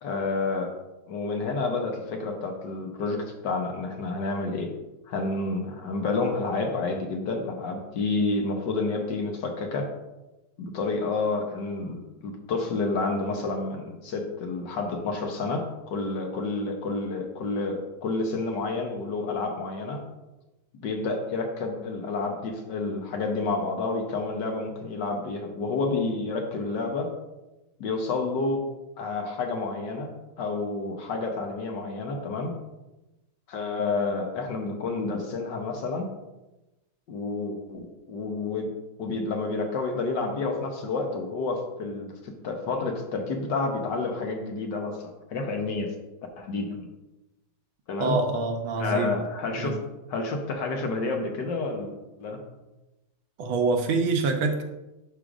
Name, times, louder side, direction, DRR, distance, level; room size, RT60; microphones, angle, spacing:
voice 1, 0.0-0.7 1.1-4.7 5.1-9.9 10.6-20.0 20.8-27.1 27.8-28.6 29.0-30.1 30.4-32.5 33.5-36.1 37.1-38.7 39.0-45.9 46.4-46.9 47.9-48.2 48.8-49.8 50.1-51.9 52.2-52.4, left 3 dB, 65° left, 3 dB, 1.4 m, -29 dB
voice 2, 48.0-49.2 49.6-49.8 53.4-54.6, right 3 dB, 80° right, 4 dB, 1.6 m, -25 dB
11.0 x 5.0 x 2.5 m, 1.0 s
omnidirectional pair, 2.2 m